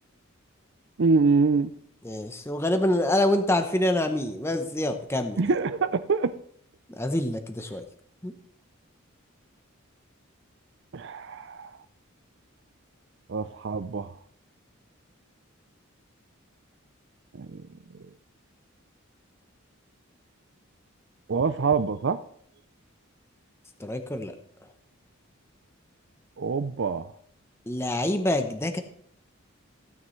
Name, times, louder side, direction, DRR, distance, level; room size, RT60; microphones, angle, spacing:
voice 1, 1.0-1.7 5.4-6.4 10.9-11.7 13.3-14.1 17.3-17.6 21.3-22.2 26.4-27.1, right 4 dB, 55° right, 0.5 m, -25 dB
voice 2, 2.0-5.4 6.9-7.8 8.2-8.3 23.8-24.4 27.7-28.8, left 1 dB, 10° left, 0.8 m, -26 dB
15.5 x 9.4 x 3.2 m
head